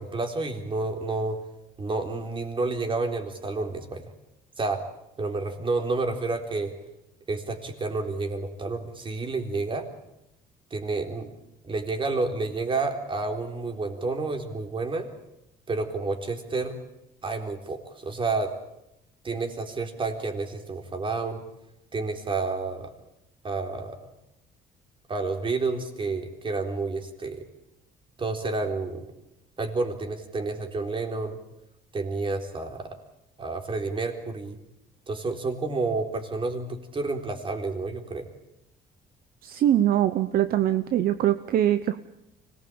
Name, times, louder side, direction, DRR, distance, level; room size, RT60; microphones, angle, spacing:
voice 1, 0.0-1.4 1.8-4.0 4.6-4.8 5.2-6.7 7.3-9.8 10.7-11.3 11.6-15.1 15.7-16.7 17.2-18.5 19.2-21.4 21.9-22.9 23.4-24.0 25.1-27.4 28.2-29.1 29.6-31.4 31.9-32.9 33.4-34.6 35.1-38.3, right 3 dB, 30° right, 4 dB, 3.9 m, -30 dB
voice 2, 39.4-42.0, right 11 dB, 60° right, 11 dB, 0.9 m, -23 dB
25.0 x 19.5 x 8.7 m, 0.86 s
cardioid pair, 110°, 17 cm